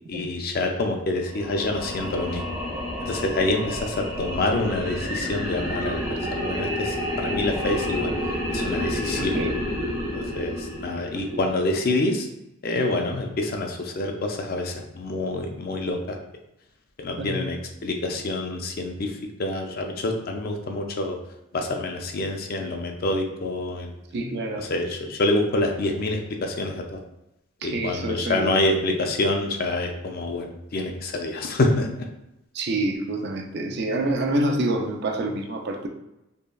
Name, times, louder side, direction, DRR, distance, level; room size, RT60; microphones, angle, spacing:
voice 1, 0.1-2.5 3.0-8.1 8.5-9.4 10.1-12.3 12.6-16.2 17.0-17.6 17.8-21.2 21.5-23.9 24.6-27.0 27.6-31.9, left 2 dB, 45° left, 3 dB, 0.4 m, -27 dB
sound 1, 1.3-11.6, equal, 10° right, 0.7 m, -30 dB
voice 2, 9.2-9.6 11.3-11.4 17.2-17.5 24.1-24.6 27.6-28.6 32.5-35.9, right 2 dB, 50° right, 3 dB, 0.4 m, -27 dB
5.2 x 2.2 x 2.3 m, 0.88 s
head